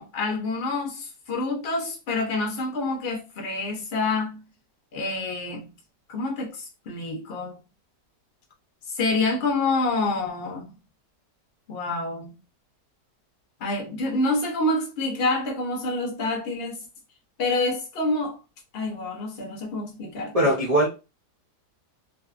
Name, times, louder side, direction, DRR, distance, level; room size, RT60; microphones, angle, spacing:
voice 1, 0.0-4.4 4.9-5.7 6.1-7.6 8.9-10.7 11.7-12.4 13.6-16.8 17.4-18.4 18.7-20.3, left 2 dB, 50° left, 0.8 m, -27 dB
voice 2, 20.3-20.9, right 1 dB, 70° right, 0.3 m, -20 dB
2.6 x 2.3 x 2.4 m
omnidirectional pair, 1.8 m